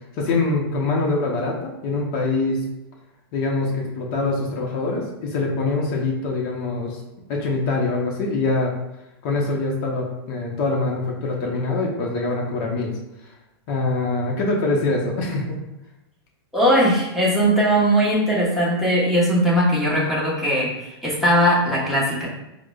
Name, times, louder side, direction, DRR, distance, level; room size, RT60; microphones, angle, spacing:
voice 1, 0.2-2.6 3.3-7.0 7.3-8.7 9.2-12.9 13.7-15.6, left 3 dB, 45° left, -2 dB, 0.7 m, -24 dB
voice 2, 16.5-22.3, equal, ahead, -7 dB, 1.0 m, -19 dB
4.7 x 2.1 x 2.3 m, 0.91 s
hypercardioid pair, 125°, 13 cm